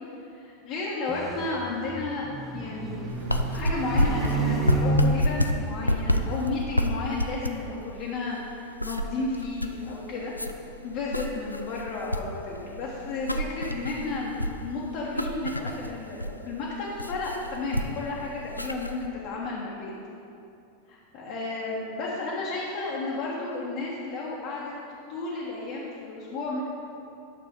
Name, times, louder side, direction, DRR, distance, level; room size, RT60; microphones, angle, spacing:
voice 1, 0.3-3.1 3.5-10.3 10.8-19.9 20.9-24.7 25.1-26.6, left 3 dB, 40° left, -6 dB, 1.4 m, -32 dB
sound 1, 1.1-6.6, right 3 dB, 25° right, 1.0 m, -31 dB
sound 2, 3.1-19.1, equal, 85° left, 0.4 m, -29 dB
11.5 x 6.7 x 3.8 m, 2.7 s
figure-of-eight pair, 90°, 0 cm